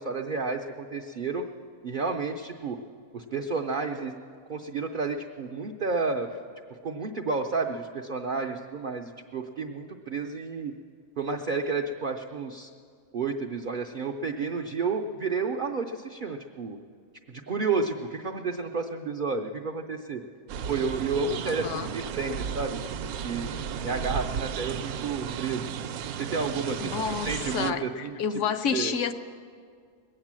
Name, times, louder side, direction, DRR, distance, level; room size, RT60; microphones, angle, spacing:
voice 1, 0.0-1.5 1.8-2.8 3.1-4.1 4.5-6.4 6.8-10.7 11.2-12.7 13.1-16.8 17.3-20.2 20.7-23.6 23.8-25.7 26.2-28.2 28.7-28.9, right 4 dB, 55° right, 3 dB, 0.5 m, -31 dB
sound 1, 20.5-27.7, right 8 dB, 75° right, 1.0 m, -34 dB
voice 2, 21.5-21.9 26.8-29.1, left 6 dB, 65° left, 9 dB, 0.9 m, -29 dB
20.5 x 8.8 x 7.5 m, 2.2 s
omnidirectional pair, 1.6 m